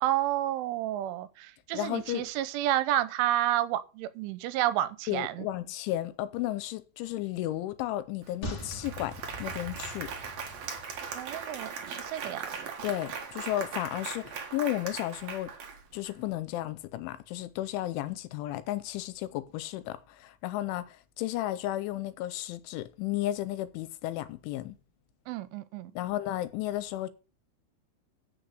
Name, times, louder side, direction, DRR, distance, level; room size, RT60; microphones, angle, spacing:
voice 1, 0.0-5.5 11.1-12.8 25.3-25.9, right 13 dB, 85° right, 3.1 m, -30 dB
voice 2, 1.7-2.2 5.1-10.1 12.8-15.5 15.9-24.8 26.0-27.1, left 14 dB, 80° left, 3.1 m, -33 dB
Applause, 8.2-8.3 8.6-16.1, right 6 dB, 70° right, 1.6 m, -39 dB
sound 1, 8.4-11.9 12.2-12.3, equal, 50° left, 1.4 m, -43 dB
8.1 x 6.8 x 6.5 m
omnidirectional pair, 5.6 m